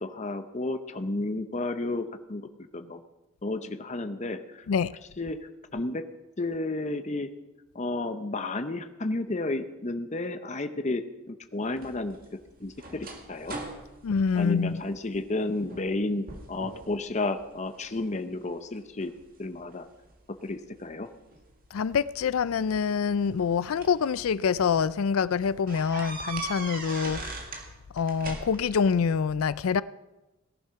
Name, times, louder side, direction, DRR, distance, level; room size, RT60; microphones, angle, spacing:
voice 1, 0.0-3.0 3.4-4.7 5.2-5.4 5.7-6.0 6.4-7.3 7.7-12.2 12.6-13.6 14.3-19.1 19.4-19.9 20.4-21.1, left 2 dB, 30° left, 0.8 m, -32 dB
sound 1, 11.8-15.2 15.6-16.0 16.3-16.9 17.4-18.1 18.7-20.1 21.3-21.4 22.6-24.0 24.6-24.7 25.0-25.1 25.7-27.7 28.0-28.8, right 3 dB, 40° right, 2.0 m, -40 dB
voice 2, 14.0-14.8 21.7-27.4 27.9-29.8, left 6 dB, 75° left, 0.4 m, -26 dB
17.5 x 11.0 x 5.7 m
head